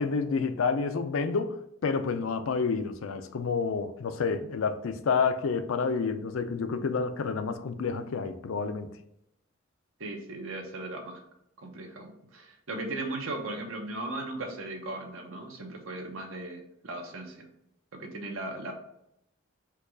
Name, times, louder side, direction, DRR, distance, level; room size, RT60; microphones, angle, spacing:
voice 1, 0.0-1.6 1.8-8.9, left 5 dB, 80° left, 0.4 m, -29 dB
voice 2, 10.0-11.2 11.6-17.5 17.9-18.7, right 2 dB, 85° right, 0.9 m, -37 dB
4.6 x 2.3 x 4.7 m
head